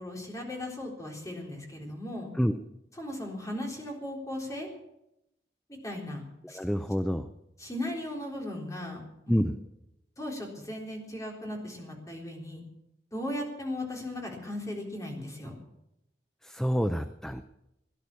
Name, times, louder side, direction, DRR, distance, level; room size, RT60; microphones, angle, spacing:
voice 1, 0.0-2.3 3.0-4.7 5.7-6.2 6.5-6.6 7.6-9.0 9.3-9.4 10.2-12.6 13.1-15.6, left 1 dB, 20° left, 0 dB, 3.8 m, -37 dB
voice 2, 6.5-7.3 9.3-9.5 16.4-17.4, equal, 5° left, 9 dB, 0.6 m, -27 dB
17.5 x 11.0 x 7.0 m, 0.86 s
head